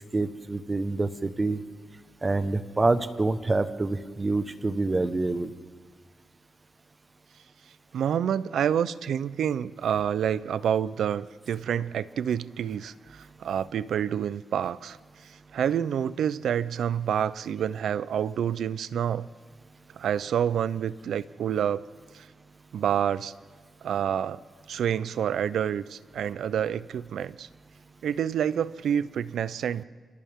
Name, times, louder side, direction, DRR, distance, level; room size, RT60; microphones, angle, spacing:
voice 1, 0.1-1.6 2.2-5.5, right 2 dB, 30° right, 11 dB, 1.2 m, -26 dB
voice 2, 7.9-15.0 15.5-19.3 20.0-21.8 22.1-22.3 22.7-23.3 23.8-24.4 24.7-27.5 28.0-29.8, right 9 dB, 80° right, 17 dB, 0.5 m, -28 dB
30.0 x 26.5 x 3.7 m, 1.5 s
cardioid pair, 80°, 0 cm